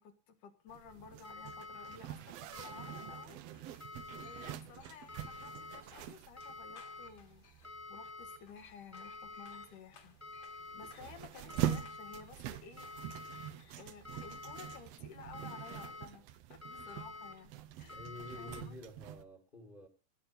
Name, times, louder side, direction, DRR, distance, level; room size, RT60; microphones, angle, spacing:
voice 1, 0.0-3.4 4.2-7.4 7.9-10.2 10.5-12.9 13.8-18.1 18.4-18.7, left 6 dB, 80° left, 3.1 m, -54 dB
Zipper (clothing), 0.7-19.2, right 11 dB, 75° right, 1.6 m, -44 dB
sound 1, 1.2-2.0 2.5-3.3 3.8-4.5 5.1-5.8 6.4-7.1 7.6-8.4 8.9-9.7 10.2-10.9 11.5-12.2 12.8-13.5 14.0-14.8 15.3-16.1 16.6-17.3 17.9-18.6, left 3 dB, 5° left, 1.6 m, -48 dB
sound 2, 2.3-16.2, left 7 dB, 50° left, 2.3 m, -65 dB
voice 2, 17.9-19.9, left 2 dB, 25° left, 1.4 m, -49 dB
17.5 x 5.9 x 6.5 m
omnidirectional pair, 3.6 m